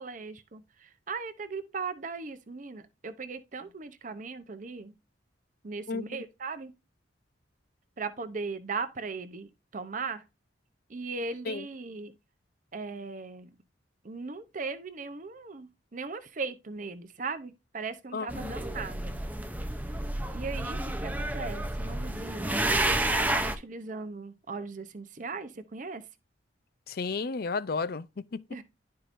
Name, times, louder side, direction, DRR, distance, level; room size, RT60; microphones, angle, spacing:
voice 1, 0.0-4.9 5.6-6.7 8.0-10.2 10.9-12.1 12.7-13.5 14.0-19.2 20.3-22.8 23.1-26.0 28.5-28.6, right 4 dB, 45° right, 0.7 m, -38 dB
voice 2, 18.1-18.5 26.9-28.1 28.3-28.4, left 4 dB, 55° left, 0.5 m, -32 dB
sound 1, 18.3-23.6, right 1 dB, 10° right, 0.6 m, -30 dB
11.5 x 4.7 x 2.6 m
head